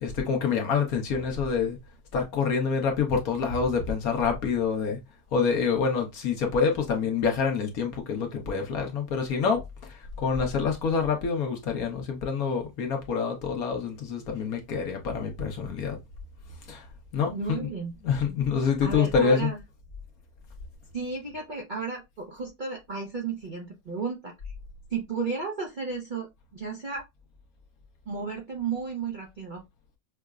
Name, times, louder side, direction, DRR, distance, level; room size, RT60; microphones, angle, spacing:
voice 1, 0.0-1.8 2.1-5.0 5.3-9.6 10.2-16.0 16.7-16.8 17.1-17.6 18.0-19.5, left 5 dB, 65° left, 1.3 m, -26 dB
voice 2, 17.3-17.9 18.8-19.6 20.9-24.3 24.9-26.3 26.5-27.0 28.1-29.6, right 4 dB, 50° right, 0.6 m, -33 dB
5.7 x 2.1 x 2.3 m
omnidirectional pair, 1.7 m